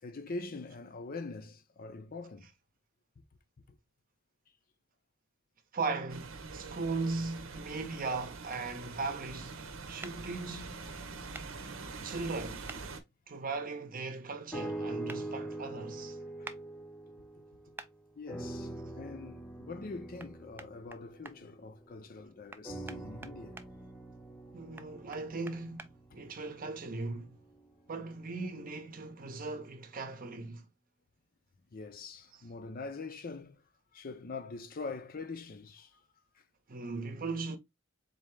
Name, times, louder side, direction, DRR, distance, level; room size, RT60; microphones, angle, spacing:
voice 1, 0.0-2.5 3.7-3.8 16.4-16.5 17.1-17.2 17.7-17.8 18.2-23.6 26.1-26.2 31.7-33.6 33.9-36.0 36.4-36.5, left 3 dB, 45° left, 0.6 m, -44 dB
voice 2, 5.7-10.8 12.0-12.7 13.3-16.2 24.5-27.4 27.9-30.7 32.3-32.4 36.7-37.6, right 3 dB, 45° right, 0.7 m, -38 dB
sound 1, 6.1-13.0, right 4 dB, 90° right, 0.8 m, -44 dB
sound 2, 8.5-8.6 10.0-10.2 11.3-11.5 12.7-12.8 15.1-15.2 16.4-16.6 17.8-17.9 20.2-20.3 20.6-21.4 22.5-23.7 24.8-25.9, right 3 dB, 10° right, 0.3 m, -46 dB
sound 3, 14.5-17.9 18.3-22.0 22.6-26.9 27.5-27.6, right 1 dB, 5° left, 0.7 m, -43 dB
4.1 x 2.8 x 3.2 m
head